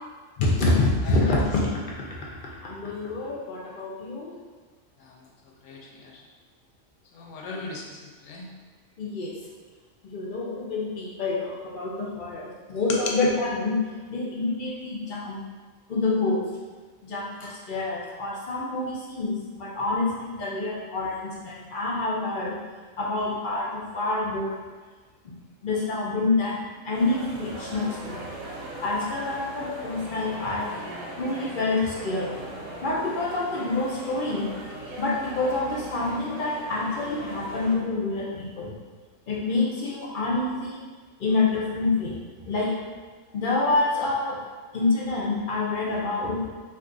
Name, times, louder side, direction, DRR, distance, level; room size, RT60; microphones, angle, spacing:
voice 1, 0.4-1.7 2.4-4.3 9.0-9.3 10.0-13.8 14.1-15.4 15.9-16.4 17.0-22.5 23.0-24.6 25.2-25.4 25.6-28.3 28.8-30.7 31.2-32.4 32.8-34.5 35.0-38.7 39.3-40.8 41.2-42.2 42.5-42.7 43.3-44.4 44.7-46.4, left 2 dB, 60° left, -4 dB, 0.5 m, -27 dB
voice 2, 1.0-1.3 5.0-5.2 5.6-6.2 7.1-8.5 12.9-13.0, left 3 dB, 75° left, 0 dB, 0.9 m, -37 dB
sound 1, 26.9-37.8, right 1 dB, 90° right, 1.1 m, -39 dB
2.5 x 2.4 x 3.6 m, 1.4 s
omnidirectional pair, 1.4 m